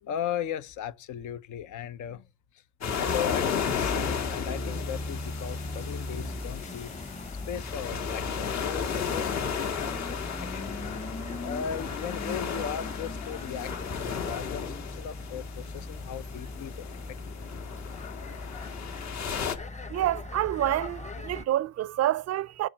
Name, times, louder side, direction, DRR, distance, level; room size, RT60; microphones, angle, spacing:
voice 1, 0.0-2.3 2.5-2.6 2.9-6.9 7.5-10.9 11.4-17.0 18.0-18.2, left 9 dB, 80° left, 0.8 m, -37 dB
sound 1, 2.8-19.6, left 7 dB, 65° left, 1.6 m, -34 dB
sound 2, 3.5-21.4, left 2 dB, 25° left, 1.0 m, -38 dB
voice 2, 19.9-22.7, right 13 dB, 55° right, 0.4 m, -28 dB
8.0 x 7.2 x 6.0 m
cardioid pair, 90°, 30 cm